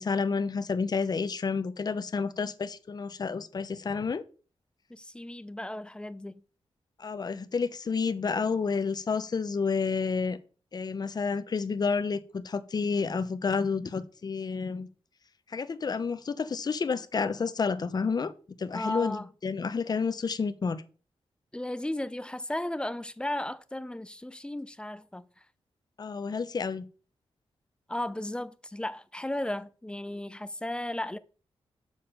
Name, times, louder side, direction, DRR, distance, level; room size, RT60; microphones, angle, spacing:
voice 1, 0.0-4.2 7.0-10.4 10.7-14.9 15.5-18.3 18.6-20.8 26.0-26.8, left 5 dB, 40° left, 0.8 m, -30 dB
voice 2, 4.9-6.4 18.7-19.3 21.5-25.3 27.9-31.2, left 1 dB, 10° left, 0.5 m, -35 dB
7.1 x 6.7 x 5.7 m
wide cardioid pair, 160°, 10 cm